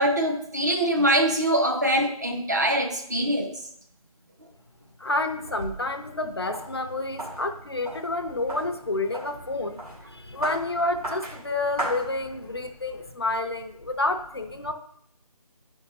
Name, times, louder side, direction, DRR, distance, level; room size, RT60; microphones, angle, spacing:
voice 1, 0.0-3.5, right 1 dB, 30° right, 1 dB, 0.6 m, -23 dB
voice 2, 5.0-14.7, left 2 dB, 40° left, 6 dB, 0.5 m, -29 dB
sound 1, 5.1-12.7, right 1 dB, 75° right, 2.2 m, -38 dB
9.4 x 5.3 x 2.9 m, 0.69 s
figure-of-eight pair, 165°, 19 cm